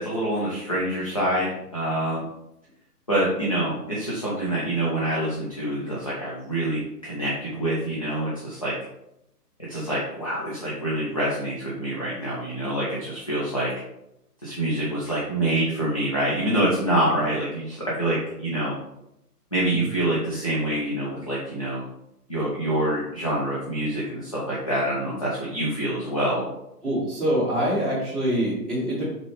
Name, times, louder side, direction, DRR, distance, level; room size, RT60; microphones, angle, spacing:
voice 1, 0.0-2.2 3.1-8.7 9.7-13.7 14.4-18.7 19.5-21.8 22.3-26.4, right 1 dB, 25° left, -7 dB, 0.4 m, -26 dB
voice 2, 26.8-29.1, equal, ahead, -11 dB, 1.2 m, -25 dB
3.8 x 3.4 x 3.1 m, 0.83 s
hypercardioid pair, 145°, 48 cm